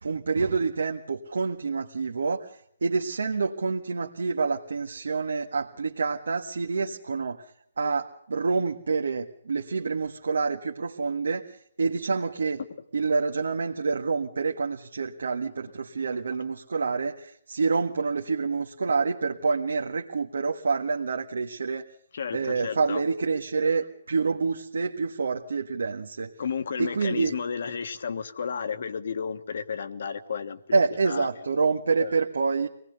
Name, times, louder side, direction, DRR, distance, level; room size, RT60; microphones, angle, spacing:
voice 1, 0.0-2.5 2.8-7.4 7.8-12.6 12.9-21.8 22.3-26.3 26.8-27.3 30.7-32.7, right 4 dB, 65° right, 2 dB, 1.6 m, -27 dB
voice 2, 22.1-23.0 26.4-30.6 31.0-31.3 32.0-32.1, left 6 dB, 40° left, 10 dB, 1.4 m, -32 dB
25.0 x 19.0 x 6.7 m, 0.68 s
hypercardioid pair, 180°, 0 cm